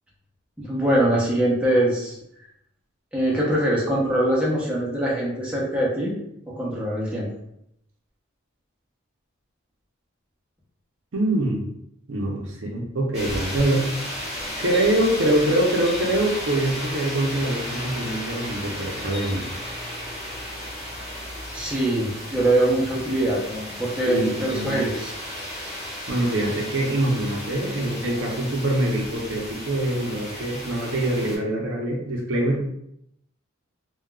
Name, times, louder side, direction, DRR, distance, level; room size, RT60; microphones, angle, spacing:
voice 1, 0.6-2.2 3.1-6.1 6.5-7.3 21.5-25.1, right 1 dB, 5° right, -6 dB, 0.6 m, -23 dB
voice 2, 11.1-11.6 12.1-13.9 14.6-19.4 24.0-24.9 26.1-32.7, right 1 dB, 70° right, 0 dB, 0.6 m, -24 dB
sound 1, 13.1-31.4, equal, 30° left, 1.2 m, -34 dB
3.5 x 2.2 x 2.3 m, 0.76 s
head